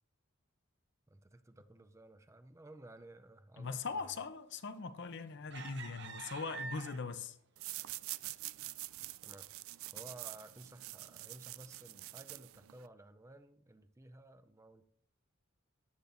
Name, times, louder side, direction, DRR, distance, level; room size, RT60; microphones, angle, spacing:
voice 1, 1.1-4.1 9.2-14.9, right 1 dB, 15° right, 0.5 m, -55 dB
voice 2, 3.6-7.4, left 4 dB, 55° left, 0.7 m, -41 dB
sound 1, 4.7-5.0 5.5-7.3 7.9-8.0 8.4-8.7, right 5 dB, 55° right, 1.1 m, -47 dB
sound 2, 7.6-12.9, right 18 dB, 75° right, 0.3 m, -46 dB
13.5 x 9.6 x 2.6 m
head